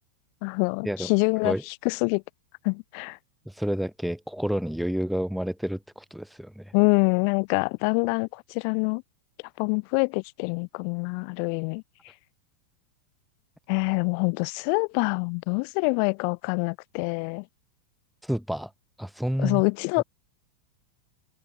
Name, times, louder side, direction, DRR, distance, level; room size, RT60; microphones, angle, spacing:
voice 1, 0.4-1.5 1.8-2.2 2.6-3.2 6.7-9.0 9.6-11.8 13.7-17.4 19.4-20.0, left 40 dB or more, 45° left, 2.9 m, -25 dB
voice 2, 3.4-6.7 18.2-18.7 19.0-19.6 20.0-20.1, equal, ahead, 1.7 m, -29 dB
figure-of-eight pair, 90°, 0 cm